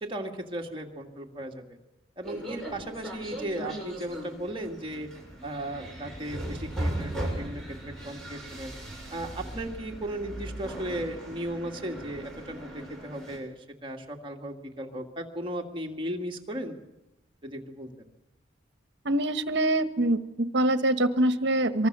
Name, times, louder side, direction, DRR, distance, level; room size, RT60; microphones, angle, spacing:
voice 1, 0.0-1.8 2.2-5.1 5.4-8.7 9.1-16.8 17.4-17.9, right 1 dB, 25° right, 1 dB, 2.2 m, -36 dB
sound 1, 2.2-13.4, right 1 dB, ahead, 7.0 m, -38 dB
voice 2, 19.0-21.9, right 1 dB, 60° right, 10 dB, 1.3 m, -24 dB
24.0 x 24.0 x 6.8 m, 0.99 s
head